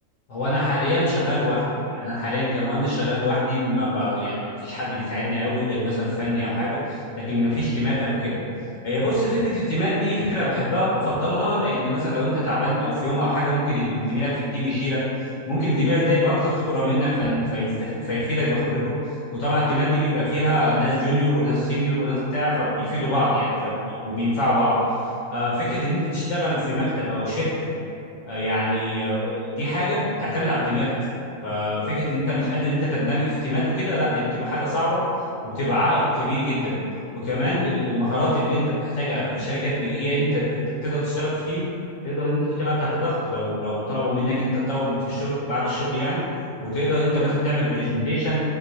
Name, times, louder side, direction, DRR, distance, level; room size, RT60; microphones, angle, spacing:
voice 1, 0.3-1.6 1.9-8.4 8.8-15.0 15.5-18.9 19.3-23.7 24.0-24.7 25.3-27.7 28.2-30.9 31.4-35.0 35.4-36.8 37.1-40.4 40.8-41.7 42.0-46.2 46.6-48.4, left 1 dB, 70° left, -8 dB, 0.9 m, -24 dB
2.4 x 2.3 x 3.9 m, 2.8 s
omnidirectional pair, 1.3 m